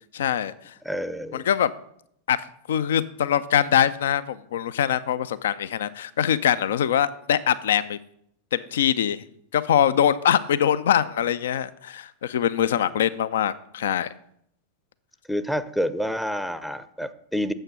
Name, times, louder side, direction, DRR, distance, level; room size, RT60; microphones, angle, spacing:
voice 1, 0.1-0.7 1.3-1.7 2.3-8.0 8.5-9.2 9.5-14.1, left 9 dB, 60° left, 17 dB, 0.4 m, -23 dB
voice 2, 0.8-1.5 15.3-17.5, equal, ahead, 13 dB, 0.6 m, -28 dB
8.9 x 7.3 x 5.4 m, 0.71 s
figure-of-eight pair, 90°, 0 cm